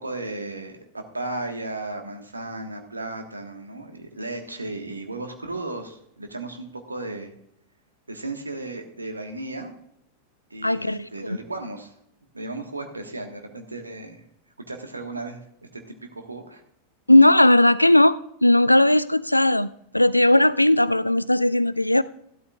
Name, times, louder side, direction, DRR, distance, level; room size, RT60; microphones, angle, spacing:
voice 1, 0.0-7.3 8.1-9.7 10.5-11.9 12.3-14.2 14.7-15.4 15.7-16.6, right 2 dB, 80° right, 1.5 m, -35 dB
voice 2, 10.6-11.1 17.1-22.0, left 1 dB, 85° left, 0.3 m, -17 dB
14.0 x 12.5 x 2.4 m
figure-of-eight pair, 90°, 0 cm